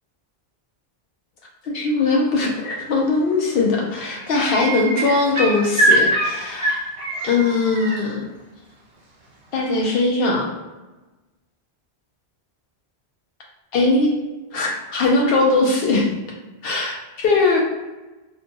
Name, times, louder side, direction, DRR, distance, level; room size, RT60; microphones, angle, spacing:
voice 1, 1.6-6.8 7.2-8.3 9.5-10.5 13.7-14.1 14.5-16.1 16.6-17.0 17.2-17.6, left 3 dB, 70° left, -1 dB, 0.7 m, -20 dB
sound 1, 3.3-3.6 3.9-8.0 9.6-9.7, right 2 dB, 60° right, 1.0 m, -23 dB
2.6 x 2.2 x 2.8 m, 1.1 s
omnidirectional pair, 1.1 m